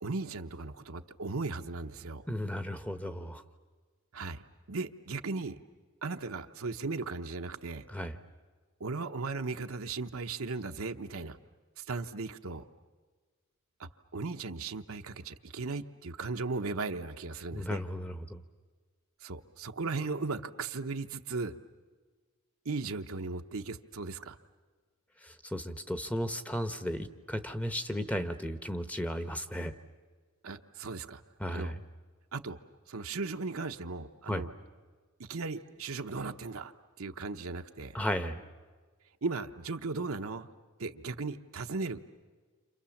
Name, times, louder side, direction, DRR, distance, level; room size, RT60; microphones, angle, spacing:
voice 1, 0.0-2.2 4.1-4.4 4.7-5.6 6.0-7.8 8.8-11.4 11.8-12.7 13.8-17.8 19.2-21.6 22.6-24.4 30.4-31.2 31.5-31.8 32.3-32.6 32.9-34.5 35.2-36.7 37.0-38.0 39.2-40.5 40.8-42.0, right 3 dB, 70° right, 7 dB, 0.9 m, -37 dB
voice 2, 2.3-3.4 7.9-8.2 17.5-18.4 25.2-29.7 31.4-31.8 34.3-34.4 37.9-38.4, equal, 5° left, 10 dB, 0.9 m, -35 dB
30.0 x 27.0 x 7.2 m, 1.4 s
head